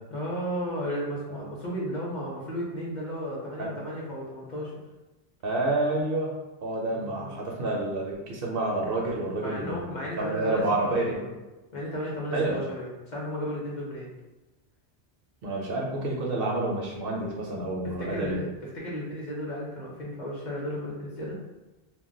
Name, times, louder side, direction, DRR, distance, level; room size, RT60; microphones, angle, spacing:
voice 1, 0.1-4.7 6.8-7.4 9.4-11.3 11.7-14.1 17.8-18.5 18.7-21.4, equal, 50° left, -5 dB, 0.7 m, -34 dB
voice 2, 5.4-6.3 6.6-11.2 12.3-12.6 15.4-18.4, right 2 dB, 65° right, -2 dB, 0.7 m, -29 dB
2.2 x 2.2 x 3.7 m, 1.1 s
omnidirectional pair, 1.2 m